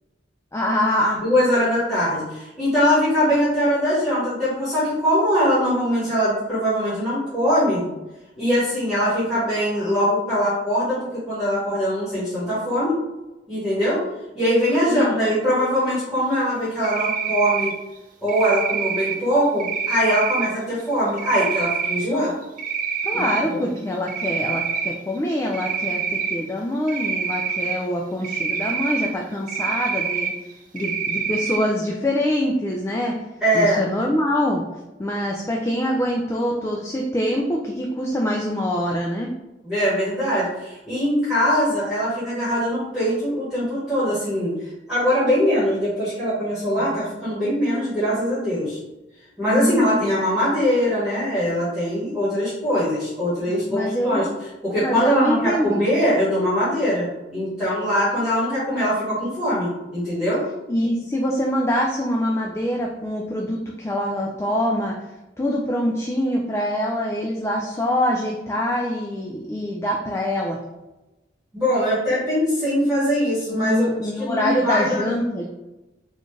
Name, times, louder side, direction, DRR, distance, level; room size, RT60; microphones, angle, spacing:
voice 1, 0.5-1.2 14.9-15.4 22.1-22.3 23.0-30.3 30.7-33.1 33.5-34.6 35.0-39.3 46.7-47.0 49.5-50.2 53.5-54.3 54.8-55.8 59.1-59.2 60.7-64.9 65.4-70.6 73.5-75.4, equal, 15° left, -1 dB, 0.3 m, -24 dB
voice 2, 1.2-7.9 8.4-13.0 13.5-14.0 14.3-17.7 18.2-22.3 23.1-23.6 33.4-33.8 39.6-44.5 44.9-48.8 49.4-54.3 54.6-60.4 71.5-73.9 74.2-75.1, equal, 5° right, -12 dB, 1.4 m, -22 dB
Cricket, 16.8-17.7 18.3-19.1 19.6-20.5 21.2-22.0 22.4-23.4 23.8-24.9 25.5-26.4 26.9-27.7 28.2-29.1 29.5-30.3 30.8-31.6, right 6 dB, 50° right, 0.5 m, -26 dB
4.2 x 2.4 x 3.2 m, 1.0 s
head